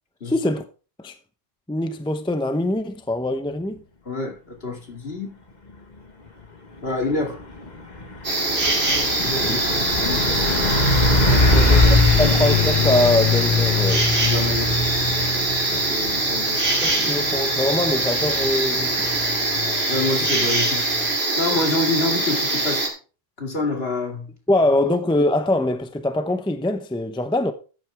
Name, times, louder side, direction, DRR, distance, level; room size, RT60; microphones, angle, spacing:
voice 1, 0.3-0.6 1.0-1.2 1.7-3.8 9.2-9.6 11.8-14.2 16.8-19.2 24.5-27.5, left 1 dB, 5° left, 0.7 m, -23 dB
voice 2, 4.1-5.4 6.8-7.4 9.2-10.7 11.3-12.3 14.2-14.9 15.7-16.6 19.9-20.9 21.4-22.8 23.4-24.3, left 2 dB, 60° left, 2.7 m, -27 dB
Truck, 6.9-21.2, left 3 dB, 40° left, 1.7 m, -23 dB
sound 1, 8.2-22.9, right 2 dB, 65° right, 3.3 m, -23 dB
13.0 x 9.0 x 3.5 m
omnidirectional pair, 1.2 m